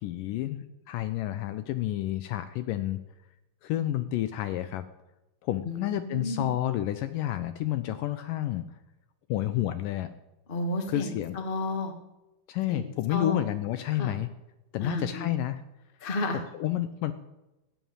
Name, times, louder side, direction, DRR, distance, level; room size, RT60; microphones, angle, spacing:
voice 1, 0.0-3.0 3.6-4.9 5.4-8.7 9.3-10.1 10.9-11.4 12.5-14.3 14.7-15.6 16.5-17.1, left 13 dB, 80° left, 11 dB, 2.0 m, -30 dB
voice 2, 5.6-6.5 10.5-11.9 12.7-13.4 13.9-14.2 14.8-15.3 16.0-16.4, left 2 dB, 45° left, 5 dB, 0.6 m, -32 dB
14.5 x 9.0 x 8.9 m, 0.99 s
omnidirectional pair, 4.4 m